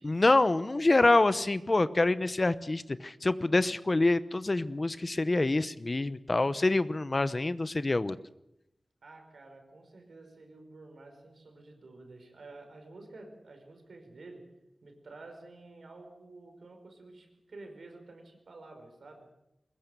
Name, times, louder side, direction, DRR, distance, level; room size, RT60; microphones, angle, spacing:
voice 1, 0.0-8.2, left 2 dB, 35° left, 14 dB, 0.9 m, -26 dB
voice 2, 9.0-14.5 14.8-19.3, right 2 dB, 80° right, 4 dB, 5.1 m, -50 dB
22.5 x 20.5 x 6.9 m, 0.85 s
wide cardioid pair, 90°, 0 cm